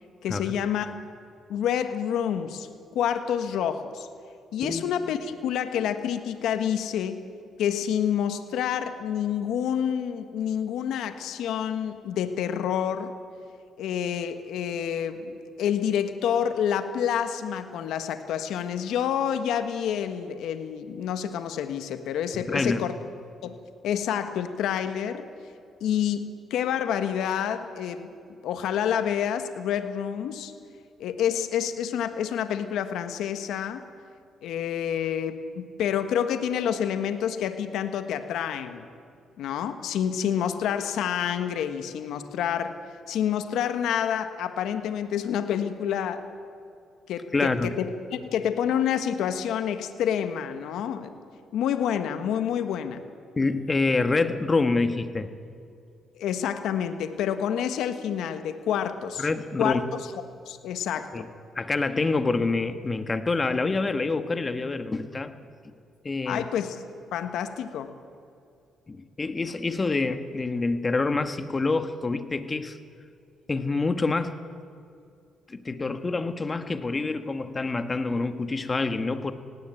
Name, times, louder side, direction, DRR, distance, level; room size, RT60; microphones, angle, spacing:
voice 1, 0.2-1.0 1.5-2.7 2.9-4.1 4.5-7.2 7.6-13.1 13.8-22.9 23.4-25.3 25.8-28.1 28.4-30.5 31.0-33.8 34.4-38.8 39.4-42.8 43.1-46.3 47.1-47.9 48.1-51.2 51.5-53.0 56.2-59.3 59.6-60.0 60.5-61.2 66.3-66.8 67.1-67.9, left 9 dB, 80° left, 9 dB, 1.4 m, -28 dB
voice 2, 22.3-22.8 47.3-47.7 53.4-55.3 59.2-59.8 61.1-61.3 61.5-65.3 66.0-66.4 68.9-72.8 73.5-74.3 75.5-79.3, left 3 dB, 30° left, 9 dB, 1.5 m, -26 dB
18.0 x 17.0 x 9.0 m, 2.4 s
cardioid pair, 90°, 0 cm